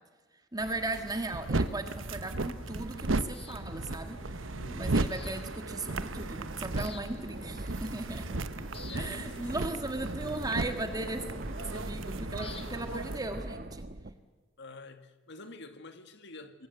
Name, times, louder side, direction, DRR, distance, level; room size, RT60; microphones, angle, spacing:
voice 1, 0.5-4.2 4.7-8.3 8.9-11.2 11.7-13.8, right 2 dB, 20° right, 1.6 m, -37 dB
sound 1, 0.6-13.2, right 2 dB, 75° right, 1.1 m, -35 dB
sound 2, 1.7-13.4, left 2 dB, 30° left, 2.6 m, -49 dB
voice 2, 4.5-5.1 8.9-9.8 11.3-12.0 14.6-16.7, left 2 dB, 60° left, 2.0 m, -49 dB
sound 3, 6.0-14.1, right 1 dB, 50° right, 1.3 m, -43 dB
26.5 x 21.0 x 8.1 m
head